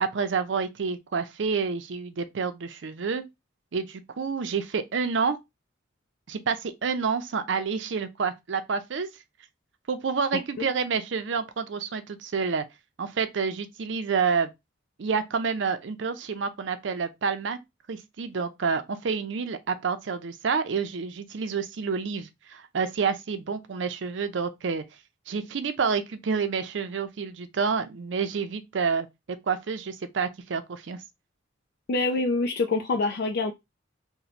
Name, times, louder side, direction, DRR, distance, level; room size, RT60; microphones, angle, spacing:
voice 1, 0.0-3.2 3.7-5.4 6.3-9.1 9.9-12.6 13.0-14.5 15.0-17.6 17.9-24.8 25.3-29.1 29.5-31.0, right 5 dB, 70° right, 0.5 m, -28 dB
voice 2, 10.3-10.7 31.9-33.5, left 3 dB, 55° left, 0.4 m, -26 dB
3.0 x 2.1 x 4.0 m
head